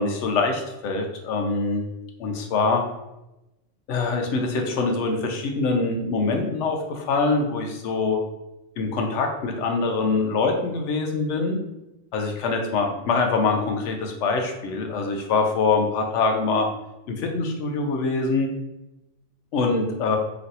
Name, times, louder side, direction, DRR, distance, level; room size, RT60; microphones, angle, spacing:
voice 1, 0.0-1.9 2.2-2.8 3.9-8.2 8.8-11.6 12.1-16.7 17.1-18.5 19.5-20.2, left 3 dB, 80° left, 3 dB, 0.9 m, -24 dB
3.0 x 2.5 x 2.7 m, 0.94 s
omnidirectional pair, 1.2 m